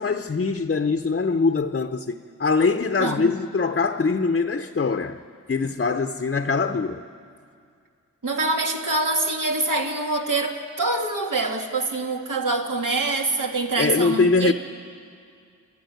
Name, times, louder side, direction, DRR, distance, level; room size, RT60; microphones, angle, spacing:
voice 1, 0.0-5.2 5.5-7.0 13.8-14.5, left 4 dB, 35° left, 0.7 m, -23 dB
voice 2, 3.0-3.3 8.2-14.5, right 2 dB, 70° right, 1.9 m, -25 dB
27.5 x 12.5 x 9.2 m
wide cardioid pair, 75°, 32 cm